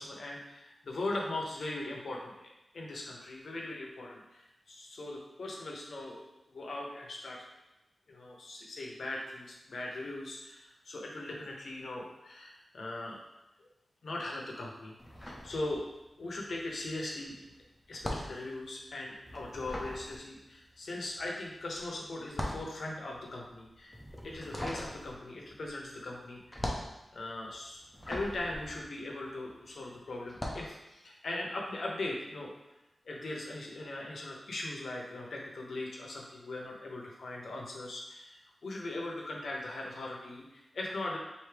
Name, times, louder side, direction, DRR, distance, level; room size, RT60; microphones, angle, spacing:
voice 1, 0.0-7.4 8.1-13.2 13.6-13.7 14.0-15.9 16.2-17.5 17.9-24.0 24.2-26.8 27.1-32.5 33.0-41.2, left 2 dB, 65° left, -1 dB, 0.8 m, -40 dB
sound 1, 15.0-16.2 16.5-29.7 30.2-30.7, left 1 dB, 10° left, 0.6 m, -41 dB
4.6 x 2.7 x 3.3 m, 0.94 s
wide cardioid pair, 150°, 0 cm